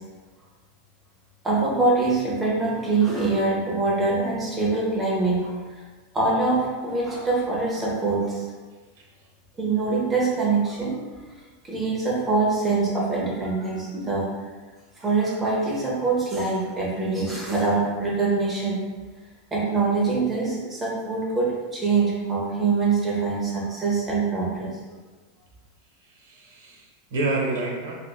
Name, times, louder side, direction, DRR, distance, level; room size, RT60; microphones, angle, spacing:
voice 1, 1.4-5.6 6.1-8.5 9.6-11.0 11.6-14.3 15.0-18.9 19.5-24.8, right 3 dB, 10° right, -5 dB, 0.7 m, -24 dB
voice 2, 26.0-28.0, right 2 dB, 85° right, -1 dB, 0.8 m, -29 dB
3.4 x 2.9 x 2.3 m, 1.3 s
supercardioid pair, 175°, 0 cm